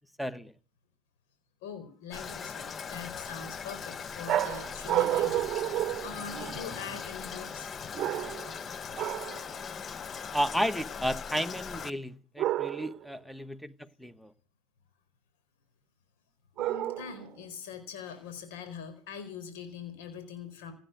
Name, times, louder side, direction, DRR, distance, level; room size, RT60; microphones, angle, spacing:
voice 1, 0.2-0.5 10.3-14.3, equal, ahead, 1.1 m, -33 dB
voice 2, 1.6-7.7 16.6-20.7, left 7 dB, 75° left, 4.3 m, -43 dB
Toilet flush, 2.1-11.9, left 6 dB, 30° left, 0.9 m, -40 dB
sound 1, 4.3-6.8 7.9-8.6 9.0-9.4 12.4-13.0 16.6-17.3, right 13 dB, 45° right, 0.8 m, -30 dB
16.5 x 9.3 x 9.1 m
hypercardioid pair, 100°, 0 cm